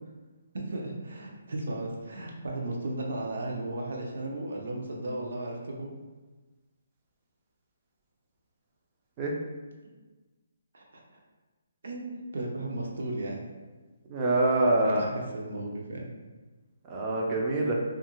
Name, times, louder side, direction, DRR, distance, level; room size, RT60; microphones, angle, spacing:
voice 1, 0.5-5.9 9.8-9.9 10.7-10.8 11.8-13.4 14.9-16.1, right 2 dB, 60° right, -1 dB, 0.6 m, -35 dB
voice 2, 14.1-15.0 16.9-17.8, right 2 dB, 15° right, -2 dB, 0.3 m, -25 dB
2.6 x 2.4 x 2.9 m, 1.2 s
hypercardioid pair, 175°, 0 cm